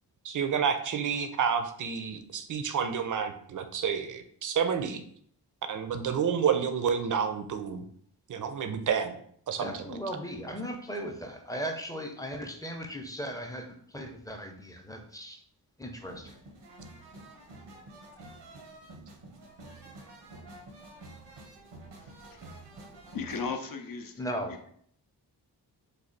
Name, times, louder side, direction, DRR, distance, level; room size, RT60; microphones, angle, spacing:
voice 1, 0.2-5.0 5.7-7.8 8.3-9.2 9.5-10.0, right 7 dB, 50° right, 8 dB, 0.5 m, -29 dB
voice 2, 9.6-15.4 15.8-16.4 24.2-24.7, equal, 10° left, 3 dB, 0.5 m, -37 dB
sound 1, 16.0-23.5, right 2 dB, 85° right, 0.8 m, -49 dB
voice 3, 22.0-22.8 23.1-24.2 24.5-24.7, left 5 dB, 55° left, 6 dB, 0.5 m, -38 dB
3.3 x 2.2 x 3.8 m, 0.63 s
cardioid pair, 70°, 42 cm